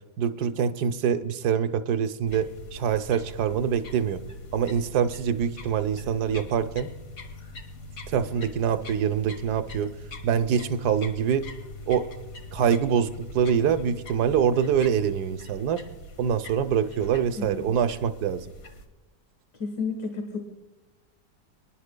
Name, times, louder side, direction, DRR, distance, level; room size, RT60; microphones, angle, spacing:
voice 1, 0.2-4.2 4.5-6.9 8.1-9.9 10.2-11.5 11.9-12.1 12.5-15.8 16.2-18.4, right 8 dB, 70° right, 10 dB, 1.2 m, -25 dB
sound 1, 2.2-18.9, left 2 dB, 55° left, 1.7 m, -42 dB
voice 2, 19.5-20.4, left 4 dB, 75° left, 4 dB, 1.9 m, -31 dB
24.5 x 11.0 x 2.2 m, 1.1 s
omnidirectional pair, 1.8 m